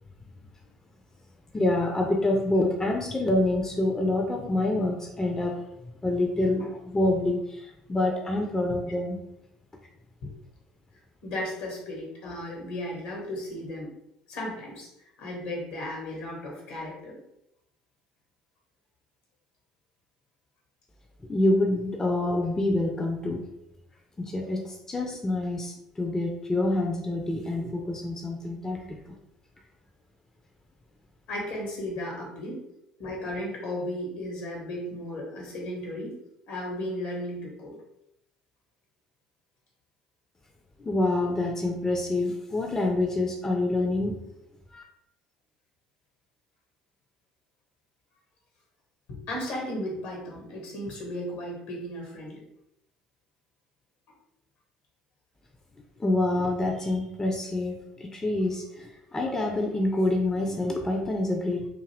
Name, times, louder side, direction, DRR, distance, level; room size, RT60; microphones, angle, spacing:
voice 1, 1.5-5.6 6.0-9.2 21.3-23.4 24.2-29.2 40.8-44.2 44.7-44.8 56.0-61.7, left 2 dB, 15° left, 2 dB, 0.4 m, -27 dB
voice 2, 11.2-13.9 14.3-14.9 15.2-17.2 22.2-22.3 31.3-32.6 33.0-36.2 36.5-37.8 49.1-52.4, left 1 dB, 65° left, -1 dB, 1.1 m, -35 dB
2.6 x 2.5 x 3.1 m, 0.81 s
figure-of-eight pair, 60°, 3 cm